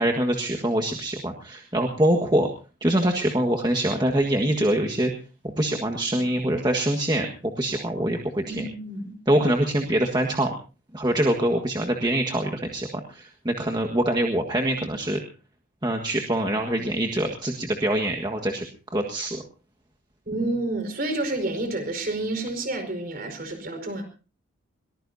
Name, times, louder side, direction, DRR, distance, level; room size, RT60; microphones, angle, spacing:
voice 1, 0.0-2.5 2.8-5.1 5.6-8.6 9.3-10.5 10.9-12.9 13.1-15.2 15.8-18.6 18.9-19.4, right 1 dB, 20° right, 2 dB, 1.6 m, -24 dB
voice 2, 8.5-9.1 20.3-24.0, right 2 dB, 45° right, 7 dB, 4.9 m, -29 dB
22.5 x 19.5 x 2.7 m, 0.35 s
head